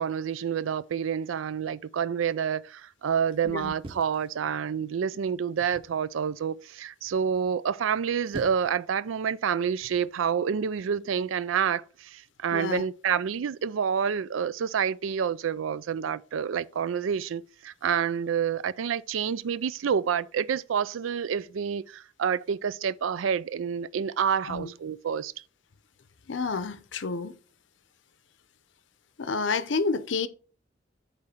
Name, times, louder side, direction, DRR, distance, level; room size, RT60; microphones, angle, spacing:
voice 1, 0.0-25.3, right 7 dB, 85° right, 0.4 m, -28 dB
sound 1, 3.8-4.9 5.6-6.0 7.9-8.8 9.8-10.1, right 2 dB, 25° right, 0.9 m, -44 dB
voice 2, 12.5-12.8 24.5-24.7 26.3-27.3 29.2-30.3, left 4 dB, 70° left, 0.7 m, -29 dB
8.4 x 3.2 x 6.1 m
head